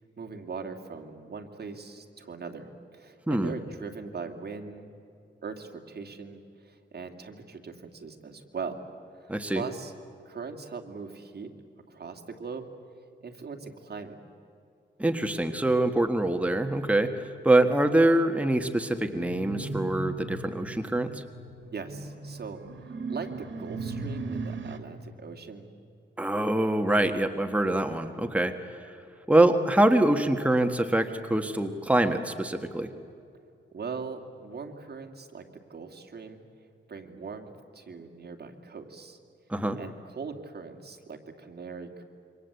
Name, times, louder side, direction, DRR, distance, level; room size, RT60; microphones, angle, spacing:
voice 1, 0.0-4.9 5.4-8.8 9.2-9.9 10.2-11.5 11.9-12.7 13.2-14.2 21.7-25.7 33.7-36.4 36.9-37.5 37.7-39.2 39.8-42.0, right 5 dB, 55° right, 5 dB, 2.6 m, -40 dB
voice 2, 9.3-9.6 15.0-21.2 26.2-28.8 29.3-32.9 39.5-39.8, right 1 dB, 5° right, 6 dB, 1.5 m, -24 dB
sound 1, 19.2-24.8, right 3 dB, 75° right, 2.4 m, -37 dB
27.5 x 24.5 x 8.3 m, 2.6 s
wide cardioid pair, 95°, 20 cm